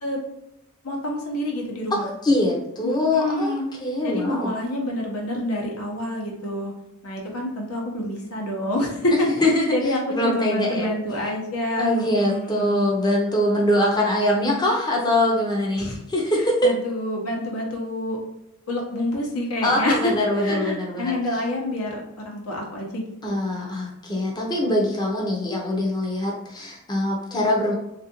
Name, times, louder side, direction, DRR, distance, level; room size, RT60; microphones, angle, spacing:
voice 1, 0.8-2.1 2.8-3.6 4.0-6.7 7.0-12.8 15.8-16.0 16.4-18.2 18.7-20.1 20.4-23.4, left 1 dB, 80° left, 0 dB, 0.9 m, -27 dB
voice 2, 1.9-4.5 9.4-10.9 11.8-16.7 19.6-21.1 23.2-27.7, left 1 dB, 20° left, -2 dB, 0.5 m, -23 dB
3.4 x 2.5 x 2.8 m, 0.85 s
head